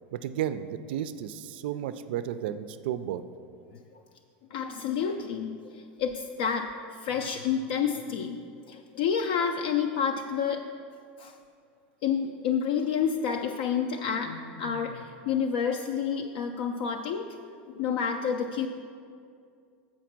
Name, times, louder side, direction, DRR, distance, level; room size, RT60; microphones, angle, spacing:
voice 1, 0.1-3.2, right 10 dB, 70° right, 12 dB, 0.3 m, -33 dB
voice 2, 4.5-10.7 11.2-11.3 12.0-17.3 17.7-18.7, left 7 dB, 60° left, 4 dB, 0.4 m, -29 dB
7.4 x 5.1 x 5.9 m, 2.3 s
supercardioid pair, 155°, 6 cm